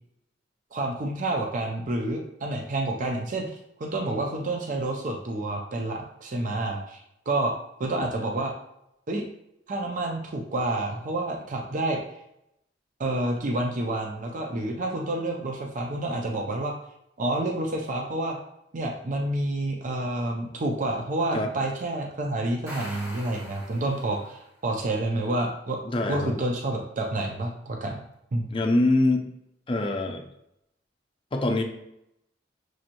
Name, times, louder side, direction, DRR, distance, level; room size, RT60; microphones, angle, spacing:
voice 1, 0.7-7.0 7.3-7.5 7.8-8.5 9.1-9.2 9.7-12.0 13.0-16.7 17.2-18.4 18.7-25.8 26.1-27.9 28.3-28.5, right 2 dB, 45° right, 1 dB, 0.5 m, -29 dB
sound 1, 22.5-24.4, equal, 20° right, 1.3 m, -42 dB
voice 2, 25.8-26.3 28.5-29.3 29.7-30.2 31.3-31.6, left 2 dB, 30° left, 4 dB, 0.5 m, -24 dB
6.2 x 2.9 x 2.5 m, 0.81 s
head